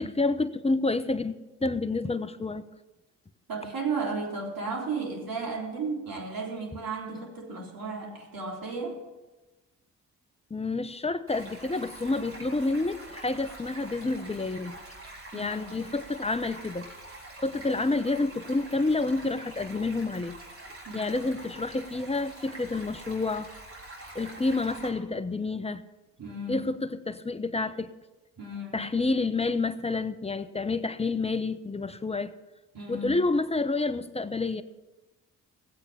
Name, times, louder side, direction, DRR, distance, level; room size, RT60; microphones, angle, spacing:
voice 1, 0.0-1.3 1.6-2.6 10.5-14.8 15.3-16.9 17.4-20.4 20.9-23.5 24.1-25.8 26.5-27.9 28.7-32.3 32.9-34.6, left 3 dB, 15° left, 13 dB, 0.9 m, -29 dB
voice 2, 3.5-9.0 15.3-15.8 20.9-21.2 26.2-26.6 28.4-28.9 32.7-33.1, right 4 dB, 55° right, -1 dB, 3.9 m, -34 dB
Stream, 11.3-24.9, right 2 dB, 30° right, 3.9 m, -45 dB
17.0 x 8.1 x 5.8 m, 1.1 s
hypercardioid pair, 40°, 42 cm